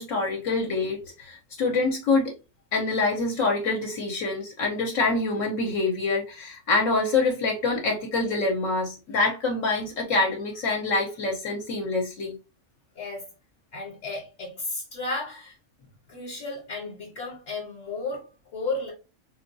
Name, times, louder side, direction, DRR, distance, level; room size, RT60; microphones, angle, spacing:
voice 1, 0.0-2.3 2.7-12.3, left 3 dB, 75° left, 1.0 m, -26 dB
voice 2, 12.9-13.3 13.7-15.6 16.1-18.9, left 3 dB, 60° left, 1.1 m, -33 dB
3.7 x 2.2 x 2.5 m
omnidirectional pair, 1.4 m